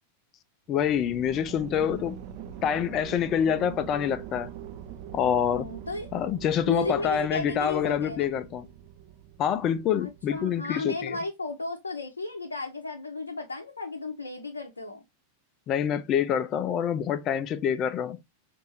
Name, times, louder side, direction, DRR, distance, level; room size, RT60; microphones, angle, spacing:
voice 1, 0.7-2.2 2.6-4.5 5.1-5.7 6.1-8.7 9.4-11.2 15.7-18.2, left 8 dB, 35° left, 0.5 m, -26 dB
sound 1, 0.7-10.6, right 9 dB, 45° right, 0.6 m, -43 dB
voice 2, 5.5-6.1 6.7-8.3 10.0-15.0, left 2 dB, 75° left, 0.7 m, -34 dB
5.3 x 2.6 x 3.0 m
figure-of-eight pair, 90°, 0 cm